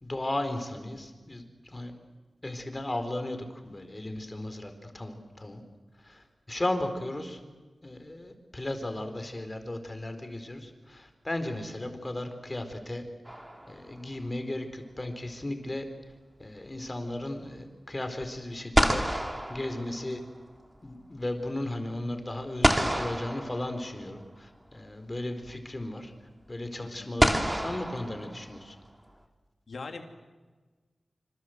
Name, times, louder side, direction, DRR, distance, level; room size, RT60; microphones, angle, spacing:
voice 1, 0.0-1.9 2.4-3.4 3.6-5.6 6.1-6.2 6.5-7.4 7.8-13.0 13.7-15.8 16.4-19.0 19.5-20.2 20.8-26.1 26.5-28.7, left 1 dB, 25° left, 7 dB, 4.1 m, -35 dB
sound 1, 13.3-14.1 18.2-18.3 18.7-20.5 22.6-24.2 25.6-25.7 27.2-28.8, right 1 dB, 10° right, 2.7 m, -28 dB
voice 2, 26.8-27.1 29.7-30.0, left 4 dB, 75° left, 5 dB, 3.1 m, -41 dB
26.5 x 26.0 x 8.0 m, 1.3 s
wide cardioid pair, 75°, 0 cm